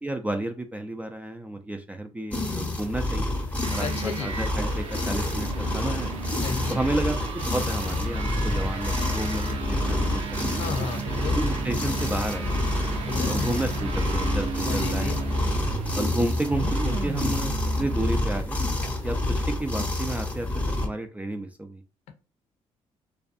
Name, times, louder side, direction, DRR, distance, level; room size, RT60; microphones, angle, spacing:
voice 1, 0.0-3.3 3.7-6.1 6.7-10.7 11.3-12.6 13.2-15.3 15.9-17.5 17.8-18.6 19.0-21.8, right 2 dB, 10° right, 0.4 m, -31 dB
sound 1, 2.3-20.9, left 2 dB, 15° left, 0.7 m, -28 dB
sound 2, 3.6-18.3, right 5 dB, 75° right, 0.5 m, -34 dB
voice 2, 3.8-4.3 6.4-6.8 10.6-11.4 13.1-13.6 14.7-15.2, left 5 dB, 75° left, 0.6 m, -33 dB
2.5 x 2.1 x 2.5 m
cardioid pair, 75°, 12 cm